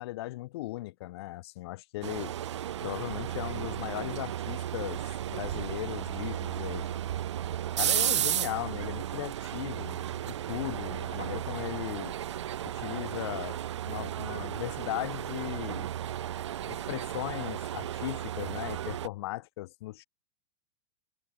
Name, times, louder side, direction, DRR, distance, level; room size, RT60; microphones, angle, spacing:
voice 1, 0.0-2.3 2.8-6.9 7.8-12.2 12.6-13.6 13.9-15.9 16.6-20.0, left 18 dB, 60° left, 2.1 m, -37 dB
sound 1, 2.0-19.1, right 11 dB, 70° right, 0.8 m, -34 dB
hypercardioid pair, 105°, 15 cm